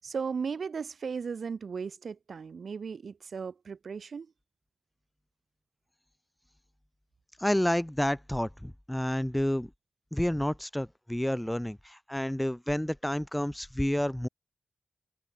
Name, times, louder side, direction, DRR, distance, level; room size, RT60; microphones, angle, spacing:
voice 1, 0.0-4.3, right 5 dB, 65° right, 6.9 m, -36 dB
voice 2, 7.4-9.7 10.1-14.3, left 1 dB, 5° left, 1.8 m, -29 dB
wide cardioid pair, 130°, 0 cm